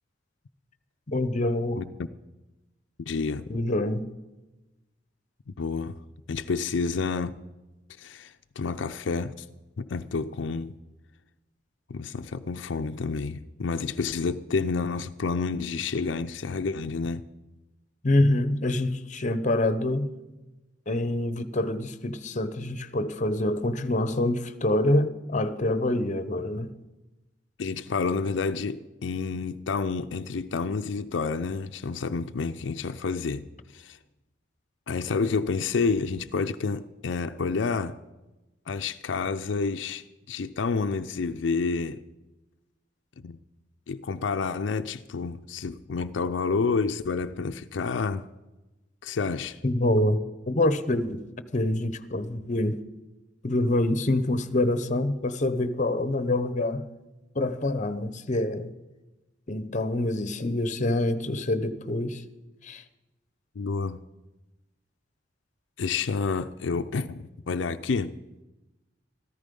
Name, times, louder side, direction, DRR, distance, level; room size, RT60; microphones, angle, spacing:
voice 1, 1.1-1.8 3.5-4.1 18.0-20.1 20.9-26.7 49.6-50.2 50.5-51.2 51.5-52.8 53.4-56.9 57.3-58.7 59.5-62.2 62.6-62.8, left 1 dB, 40° left, 0.8 m, -26 dB
voice 2, 3.0-3.5 5.6-6.0 6.3-7.4 8.0-9.5 9.8-10.7 11.9-17.2 27.6-33.5 33.7-34.0 34.9-38.0 38.7-42.0 43.2-43.4 43.9-48.3 49.0-49.6 63.6-64.0 65.8-68.1, left 4 dB, 85° left, 0.5 m, -29 dB
14.0 x 14.0 x 5.3 m
head